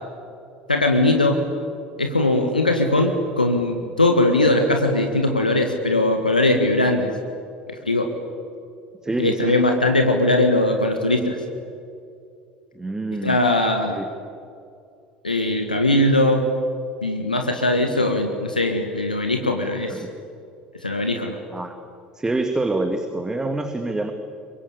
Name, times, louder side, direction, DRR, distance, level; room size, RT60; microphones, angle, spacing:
voice 1, 0.7-1.4 2.0-7.1 7.7-8.1 9.2-11.4 13.2-14.0 15.2-16.5 17.0-20.0 20.8-21.4, left 2 dB, 85° left, 4 dB, 1.8 m, -20 dB
voice 2, 9.0-9.6 12.7-13.4 13.8-14.1 19.9-20.1 21.5-21.8 22.1-24.1, right 2 dB, 15° right, 6 dB, 2.2 m, -26 dB
28.0 x 24.0 x 8.6 m, 2.5 s
figure-of-eight pair, 65°, 4 cm